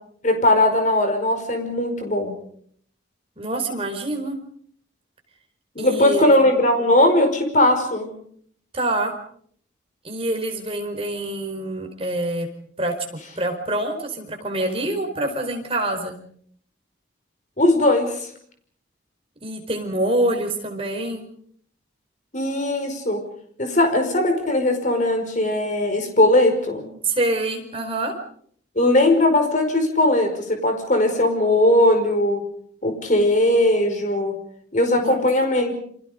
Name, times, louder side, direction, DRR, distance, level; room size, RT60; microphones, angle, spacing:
voice 1, 0.2-2.3 5.8-8.1 17.6-18.3 22.3-23.2 23.6-26.9 28.8-32.4 32.8-34.4 34.7-35.7, left 1 dB, 40° left, 5 dB, 5.4 m, -19 dB
voice 2, 3.4-4.4 5.8-6.4 8.7-9.1 10.0-12.5 12.8-12.9 13.4-16.2 19.4-21.2 27.0-28.1 35.0-35.2, right 1 dB, 30° right, 3 dB, 4.8 m, -25 dB
29.5 x 26.0 x 5.3 m, 0.62 s
head